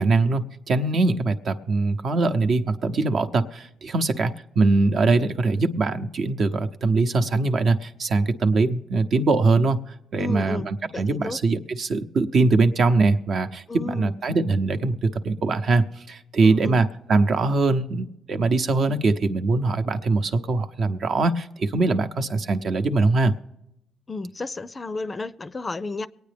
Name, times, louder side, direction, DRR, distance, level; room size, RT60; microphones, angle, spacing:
voice 1, 0.0-9.8 10.1-23.3, right 3 dB, 55° right, 0.8 m, -22 dB
voice 2, 10.2-10.7 10.9-11.4 13.7-14.1 16.4-16.8 24.1-26.1, left 3 dB, 30° left, 0.5 m, -32 dB
23.0 x 9.2 x 3.4 m
cardioid pair, 90°, 0 cm